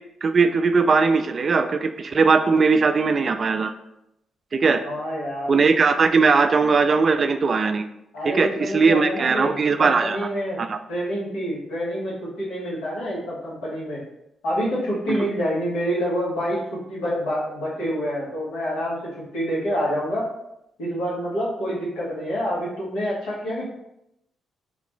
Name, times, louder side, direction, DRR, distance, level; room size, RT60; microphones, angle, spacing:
voice 1, 0.2-3.7 4.5-4.8 5.5-7.8 8.3-10.2 10.6-10.8 15.1-15.2, right 4 dB, 50° right, 8 dB, 0.3 m, -19 dB
voice 2, 4.8-5.5 8.1-10.6 10.9-14.0 14.4-20.2 20.8-23.7, equal, 85° left, -7 dB, 1.4 m, -27 dB
3.9 x 2.4 x 3.0 m, 0.84 s
supercardioid pair, 55°, 0 cm